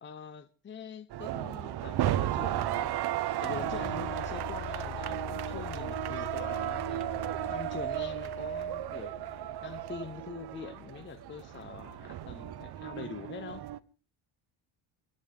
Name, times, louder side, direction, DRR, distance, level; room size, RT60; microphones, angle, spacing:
voice 1, 0.0-3.0 3.4-7.1 7.5-9.3 9.6-13.6, left 6 dB, 25° left, 0.7 m, -44 dB
sound 1, 1.1-13.8, right 12 dB, 50° right, 0.8 m, -34 dB
sound 2, 3.4-12.4, left 13 dB, 60° left, 1.0 m, -45 dB
29.5 x 11.0 x 3.7 m
cardioid pair, 140°, 49 cm